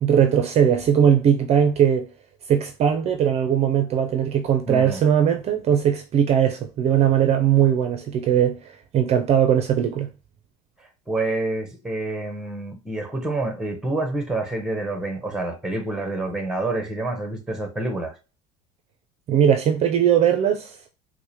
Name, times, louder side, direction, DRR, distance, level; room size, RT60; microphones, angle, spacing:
voice 1, 0.0-2.0 2.5-8.6 8.9-10.1 19.3-20.8, right 9 dB, 35° right, 0.5 m, -19 dB
voice 2, 4.7-5.0 10.8-18.1, right 2 dB, 5° right, 0.9 m, -28 dB
4.6 x 2.1 x 2.8 m
supercardioid pair, 115°, 18 cm